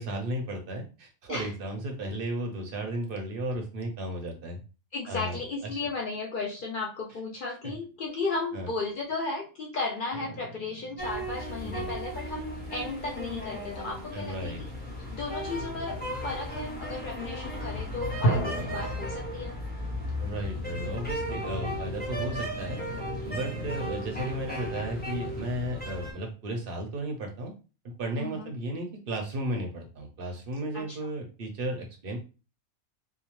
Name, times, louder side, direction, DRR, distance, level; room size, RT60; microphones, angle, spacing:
voice 1, 0.0-4.6 5.1-5.4 7.6-7.7 8.5-8.7 11.6-11.9 14.1-14.6 20.2-22.8 23.2-27.5 27.8-32.2, right 1 dB, 55° right, 3 dB, 0.6 m, -34 dB
voice 2, 4.9-14.7 15.0-19.6 28.2-28.5 30.7-31.0, left 3 dB, 65° left, -1 dB, 0.5 m, -35 dB
sound 1, 10.1-13.1 13.6-14.0 18.2-22.6, right 1 dB, 85° left, 1.1 m, -36 dB
sound 2, 11.0-26.1, left 1 dB, 10° left, 0.4 m, -35 dB
2.7 x 2.1 x 3.0 m, 0.33 s
omnidirectional pair, 1.5 m